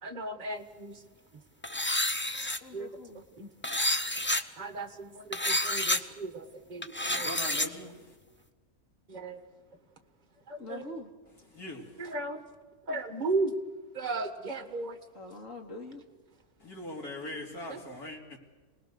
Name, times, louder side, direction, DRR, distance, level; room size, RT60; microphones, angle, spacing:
voice 1, 0.0-0.9 2.7-2.9 3.4-3.5 4.6-7.3 9.1-9.4 10.5-10.8 12.0-12.4 12.9-13.5 13.9-15.0 17.7-17.8, right 3 dB, 30° right, 8 dB, 1.6 m, -35 dB
sound 1, 1.6-2.6 3.6-4.4 5.3-6.0 6.8-7.7, left 1 dB, 15° left, 0.3 m, -29 dB
voice 2, 2.6-3.2 10.6-11.1 15.1-16.0, left 3 dB, 60° left, 2 dB, 3.0 m, -43 dB
voice 3, 7.0-8.2 11.5-12.1 16.6-18.4, left 1 dB, 90° left, 0 dB, 3.7 m, -41 dB
28.0 x 19.5 x 6.7 m, 1.3 s
omnidirectional pair, 1.6 m